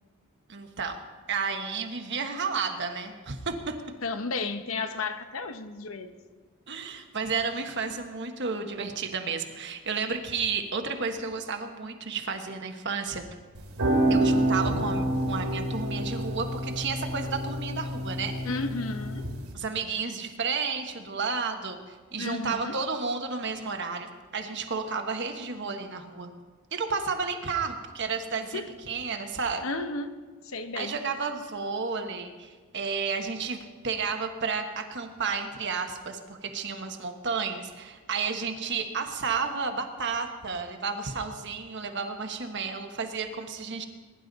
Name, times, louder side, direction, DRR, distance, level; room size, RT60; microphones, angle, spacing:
voice 1, 0.5-1.0 1.3-3.8 6.7-13.2 14.1-18.4 19.5-26.3 26.7-29.6 30.7-33.6 33.8-43.9, right 5 dB, 50° right, 5 dB, 1.3 m, -32 dB
voice 2, 4.0-6.2 18.4-19.3 22.2-22.7 28.5-28.7 29.6-30.1 30.4-31.0, left 3 dB, 65° left, 9 dB, 0.9 m, -33 dB
sound 1, 13.5-19.5, right 1 dB, 75° right, 2.5 m, -28 dB
21.0 x 11.0 x 4.1 m, 1.4 s
head